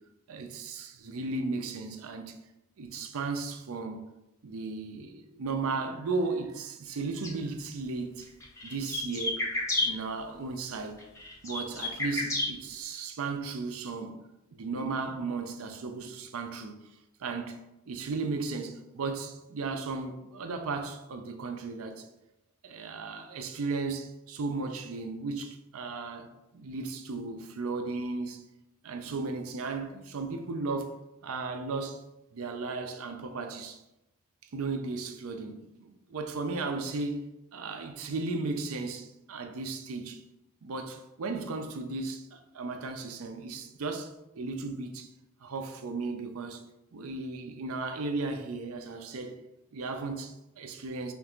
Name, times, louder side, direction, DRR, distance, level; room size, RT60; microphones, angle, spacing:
voice 1, 0.3-2.4 2.8-4.0 4.4-8.3 8.6-9.4 9.8-11.0 11.4-14.2 14.5-16.8 17.2-22.1 22.6-28.5 28.8-32.0 32.3-33.8 34.5-37.3 37.5-40.2 40.6-45.1 45.4-46.6 46.9-49.4 49.7-51.1, right 3 dB, 75° right, 0.5 m, -35 dB
sound 1, 7.2-7.3 8.2-9.9 11.0-12.5, left 2 dB, 15° left, 0.6 m, -30 dB
5.2 x 2.4 x 3.0 m
head